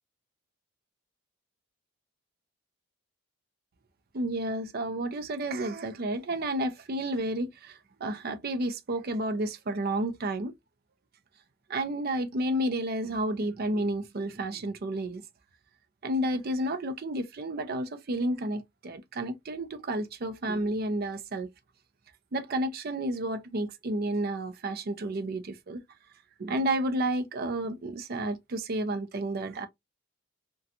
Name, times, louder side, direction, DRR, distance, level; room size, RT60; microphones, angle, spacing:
voice 1, 4.1-10.5 11.7-15.2 16.0-21.5 22.3-25.8 26.4-29.7, right 1 dB, 45° right, 0.5 m, -31 dB
2.5 x 2.2 x 2.6 m
head